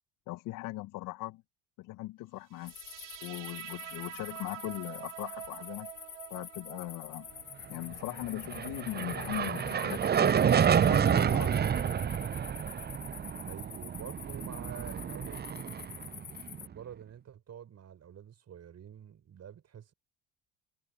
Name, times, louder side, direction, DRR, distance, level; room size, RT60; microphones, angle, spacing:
voice 1, 0.3-1.4 1.8-2.7 3.2-5.9 6.3-7.3 7.7-11.7, left 18 dB, 60° left, 1.7 m, -40 dB
sound 1, 2.5-9.6, right 13 dB, 85° right, 1.7 m, -47 dB
sound 2, 2.7-16.7, left 9 dB, 85° left, 4.0 m, -47 dB
sound 3, 8.2-16.6, right 8 dB, 25° right, 0.8 m, -29 dB
voice 2, 13.4-15.5 16.6-19.9, right 9 dB, 45° right, 7.4 m, -47 dB
hypercardioid pair, 55°, 36 cm